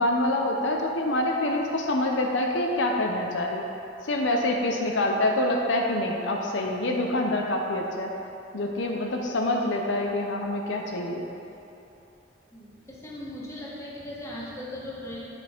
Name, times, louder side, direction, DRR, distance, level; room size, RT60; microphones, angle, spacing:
voice 1, 0.0-3.7 4.0-8.1 8.5-11.2, left 1 dB, 80° left, 1 dB, 0.7 m, -26 dB
voice 2, 12.5-15.3, left 1 dB, 15° left, -7 dB, 1.5 m, -38 dB
8.6 x 5.2 x 4.4 m, 2.8 s
head